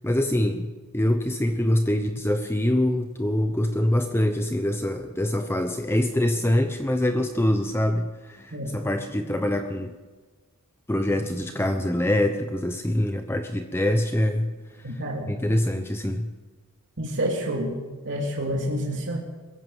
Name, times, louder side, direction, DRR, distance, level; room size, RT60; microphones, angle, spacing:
voice 1, 0.0-9.9 10.9-14.5 14.8-16.3, left 1 dB, 10° left, 6 dB, 1.0 m, -24 dB
voice 2, 14.8-15.3 17.0-17.7 18.0-19.2, equal, 55° right, -1 dB, 3.2 m, -28 dB
22.5 x 16.0 x 7.3 m, 1.3 s
head